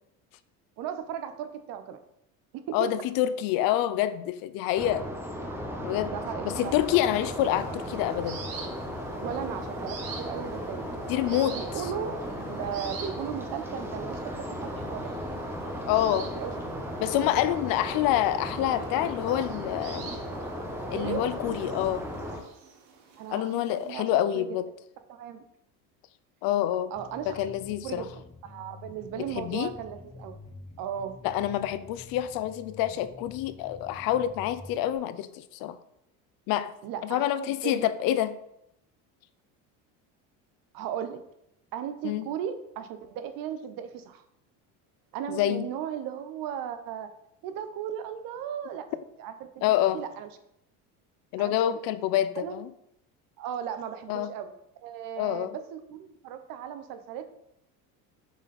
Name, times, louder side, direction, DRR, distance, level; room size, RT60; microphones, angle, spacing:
voice 1, 0.8-2.0 2.5-2.8 6.0-6.8 9.2-10.9 11.3-14.3 14.7-15.1 15.9-16.5 20.9-21.3 23.2-24.6 25.1-25.4 26.9-27.4 27.8-30.4 30.8-31.2 36.8-37.9 40.7-41.2 41.7-44.2 45.1-47.1 47.4-50.3 51.4-51.8 52.4-52.6 53.4-54.5 54.8-57.2, right 9 dB, 60° right, 9 dB, 0.9 m, -36 dB
voice 2, 2.7-5.1 5.8-6.1 6.4-8.4 11.1-11.9 15.9-16.3 17.0-20.1 20.9-22.1 23.3-24.7 26.4-26.9 27.3-28.1 29.2-29.7 31.2-35.8 36.5-36.7 37.0-38.4 42.0-42.3 45.3-45.7 49.6-50.0 51.3-52.7 54.1-54.3 55.2-55.5, left 12 dB, 65° left, 14 dB, 0.6 m, -27 dB
sound 1, 4.8-22.4, equal, 5° right, 1.1 m, -36 dB
sound 2, 6.5-24.0, right 5 dB, 80° right, 1.5 m, -48 dB
sound 3, 26.9-34.9, left 3 dB, 15° left, 1.1 m, -48 dB
7.1 x 4.1 x 4.2 m, 0.79 s
supercardioid pair, 100°, 38 cm